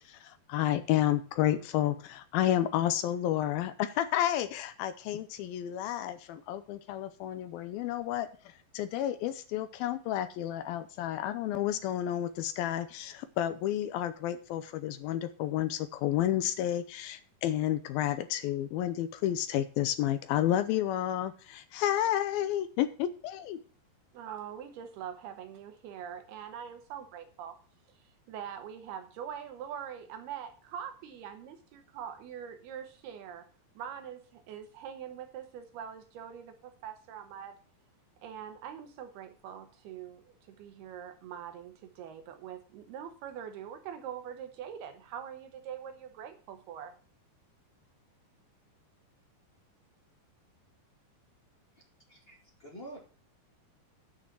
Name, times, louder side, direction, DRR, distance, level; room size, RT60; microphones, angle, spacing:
voice 1, 0.0-8.3 8.7-23.6, left 12 dB, 80° left, 12 dB, 2.2 m, -31 dB
voice 2, 24.1-27.6 28.3-33.4 33.8-37.5 38.2-46.9, right 9 dB, 75° right, 7 dB, 3.0 m, -43 dB
voice 3, 52.1-53.0, right 1 dB, 25° left, -1 dB, 1.2 m, -47 dB
9.9 x 6.4 x 7.2 m, 0.39 s
omnidirectional pair, 4.9 m